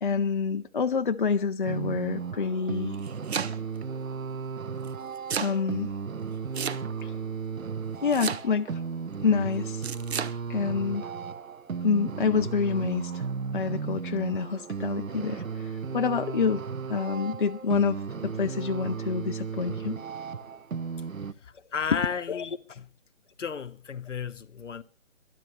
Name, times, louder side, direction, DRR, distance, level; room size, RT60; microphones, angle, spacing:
voice 1, 0.0-3.0 5.4-5.9 7.0-7.1 8.0-8.8 9.2-9.9 10.5-11.1 11.8-13.3 13.5-16.6 16.9-20.0 21.9-22.0 22.3-22.5, left 5 dB, 40° left, 0.6 m, -27 dB
sound 1, 1.6-21.3, right 6 dB, 90° right, 0.9 m, -35 dB
Domestic sounds home sounds, 2.8-3.8 4.8-5.6 6.5-7.2 8.1-8.7 9.8-10.4, right 7 dB, 55° right, 0.9 m, -32 dB
voice 2, 21.4-22.9 23.4-24.8, left 6 dB, 65° left, 1.1 m, -34 dB
22.5 x 12.0 x 3.2 m
figure-of-eight pair, 155°, 39 cm